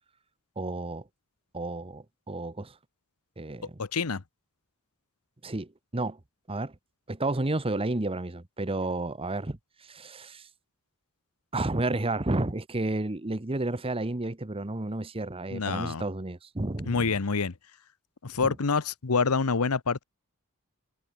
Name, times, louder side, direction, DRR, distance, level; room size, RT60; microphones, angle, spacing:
voice 1, 0.6-1.0 1.5-2.7 3.4-3.8 5.4-6.2 6.5-6.7 7.1-10.5 11.5-17.2 18.4-18.6, right 2 dB, 25° right, 1.1 m, -31 dB
voice 2, 3.8-4.2 15.5-16.0 16.9-17.5 18.2-20.0, left 4 dB, 85° left, 1.0 m, -27 dB
head